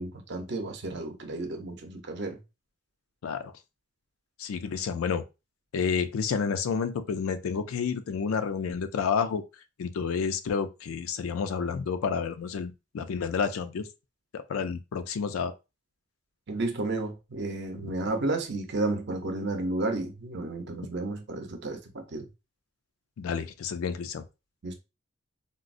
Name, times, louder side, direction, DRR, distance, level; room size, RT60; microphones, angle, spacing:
voice 1, 0.0-2.4 16.5-22.3 24.6-24.7, right 2 dB, 55° right, 0.6 m, -32 dB
voice 2, 4.4-5.2 5.7-9.4 9.8-13.9 14.3-15.5 23.2-24.3, left 6 dB, 85° left, 0.4 m, -30 dB
3.7 x 2.0 x 2.5 m
head